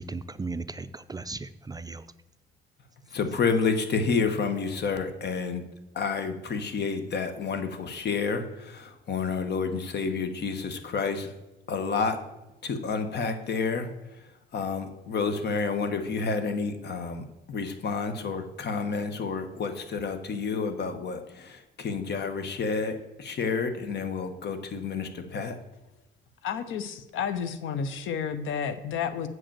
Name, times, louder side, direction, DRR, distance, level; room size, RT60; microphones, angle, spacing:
voice 1, 0.0-2.1, right 3 dB, 20° right, 12 dB, 0.4 m, -36 dB
voice 2, 3.1-5.6 5.9-11.3 11.7-12.2 12.6-13.9 14.5-25.5, left 5 dB, 60° left, 8 dB, 1.2 m, -29 dB
voice 3, 26.4-29.3, left 7 dB, 80° left, 11 dB, 0.8 m, -31 dB
7.7 x 5.1 x 7.4 m, 0.97 s
cardioid pair, 90°, 20 cm